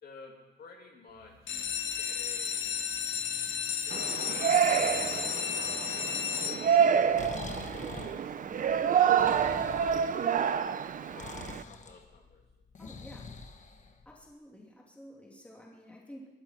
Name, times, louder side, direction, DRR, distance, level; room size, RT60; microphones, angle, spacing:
voice 1, 0.0-1.6 2.0-2.8 3.8-4.2 4.7-5.7 6.4-6.8 7.8-8.4 9.5-10.9 11.1-12.4, left 4 dB, 55° left, 0 dB, 2.7 m, -51 dB
sound 1, 1.3-7.1 7.7-8.2 8.6-8.7 8.9-9.0 9.4-9.6, left 7 dB, 90° left, 1.3 m, -33 dB
Yell, 3.9-11.6, right 8 dB, 45° right, 0.6 m, -28 dB
Breathing, 6.9-14.3, left 4 dB, 40° left, 1.4 m, -45 dB
voice 2, 12.8-13.3 14.0-16.3, equal, 5° left, -3 dB, 2.9 m, -51 dB
21.5 x 13.0 x 4.5 m, 1.1 s
wide cardioid pair, 155°, 19 cm